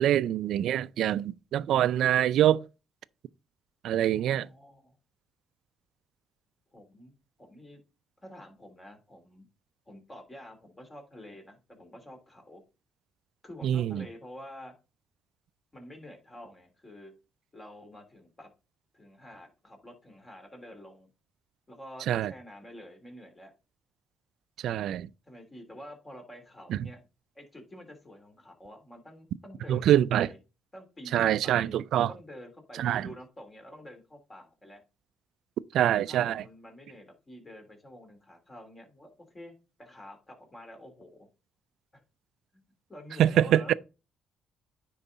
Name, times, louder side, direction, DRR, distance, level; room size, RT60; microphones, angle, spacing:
voice 1, 0.0-2.6 3.8-4.5 13.6-14.1 22.1-22.3 24.6-25.1 26.7-26.8 29.7-30.3 31.1-32.1 32.8-33.1 35.7-36.4 43.2-43.7, right 11 dB, 75° right, 0.4 m, -24 dB
voice 2, 4.1-4.9 6.7-7.1 7.4-7.8 8.2-9.5 9.9-12.6 13.4-14.8 15.7-17.2 17.5-18.5 18.9-21.1 21.7-23.5 25.3-27.0 27.3-30.4 30.7-31.7 32.1-34.8 35.8-41.3 41.9-42.0 42.9-43.8, left 1 dB, 25° left, 3.3 m, -48 dB
9.7 x 4.7 x 3.9 m
supercardioid pair, 75°, 0 cm